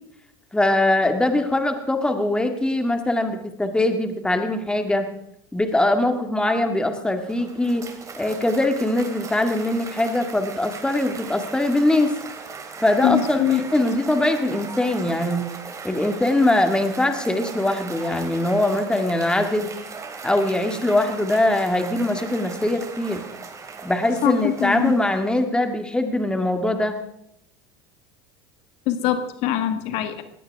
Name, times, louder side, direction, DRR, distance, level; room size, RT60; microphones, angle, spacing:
voice 1, 0.5-5.1 5.5-7.8 8.2-12.1 12.8-15.5 15.8-19.7 20.2-23.2 23.8-26.9, left 1 dB, 5° left, 6 dB, 1.9 m, -22 dB
Cheering / Applause, 7.0-25.6, right 4 dB, 25° right, 2.7 m, -38 dB
voice 2, 13.0-13.6 24.2-24.3 24.6-25.0 28.9-30.2, left 11 dB, 60° left, 9 dB, 1.5 m, -22 dB
20.0 x 16.5 x 3.6 m, 0.74 s
supercardioid pair, 105°, 12 cm